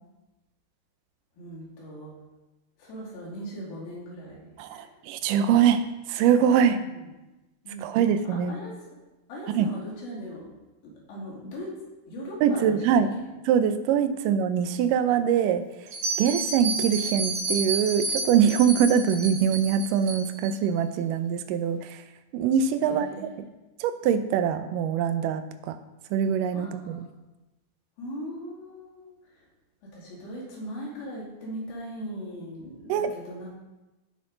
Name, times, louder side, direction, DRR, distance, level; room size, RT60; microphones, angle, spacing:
voice 1, 1.4-2.1 2.8-4.9 6.7-7.0 7.6-7.9 8.2-8.8 9.3-10.5 10.8-11.8 12.1-13.3 22.8-23.4 26.5-27.1 28.0-29.5 29.8-33.6, equal, 85° left, -5 dB, 4.5 m, -39 dB
voice 2, 4.6-6.8 7.8-8.5 9.5-9.7 12.4-15.6 16.2-22.0 22.3-23.5 23.8-25.8 26.1-27.1 32.9-33.1, right 8 dB, 75° right, 9 dB, 2.1 m, -23 dB
Bell, 15.9-20.5, right 3 dB, 50° right, 2.8 m, -31 dB
16.5 x 5.8 x 3.9 m, 1.1 s
omnidirectional pair, 4.2 m